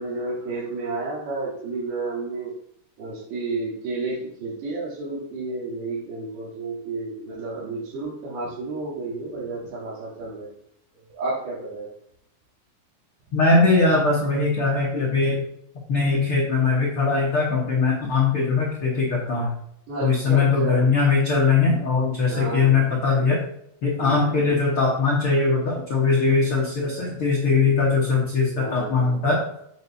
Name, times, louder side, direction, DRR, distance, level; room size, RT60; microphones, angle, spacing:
voice 1, 0.0-2.5 3.0-10.5 11.2-11.9 19.9-20.9 22.3-22.9 24.0-24.4 28.6-29.2, right 3 dB, 75° right, -6 dB, 5.0 m, -31 dB
voice 2, 13.3-15.4 15.9-19.5 20.0-23.4 23.8-29.4, left 4 dB, 70° left, -4 dB, 1.2 m, -21 dB
8.8 x 7.5 x 2.8 m, 0.71 s
omnidirectional pair, 4.9 m